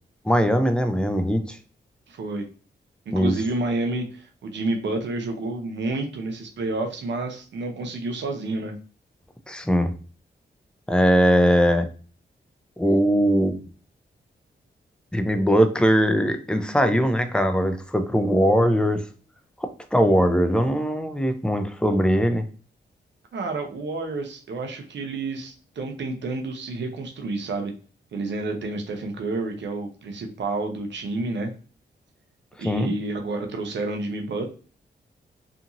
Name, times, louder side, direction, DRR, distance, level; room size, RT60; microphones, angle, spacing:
voice 1, 0.2-1.6 3.1-3.3 9.5-9.9 10.9-11.9 12.8-13.5 15.1-19.0 19.6-22.5 32.6-32.9, equal, 5° left, 7 dB, 0.5 m, -20 dB
voice 2, 2.1-2.5 3.1-8.8 23.3-27.7 28.1-31.5 32.6-34.5, right 2 dB, 75° right, 4 dB, 0.7 m, -29 dB
2.8 x 2.6 x 2.6 m, 0.38 s
cardioid pair, 55°, 19 cm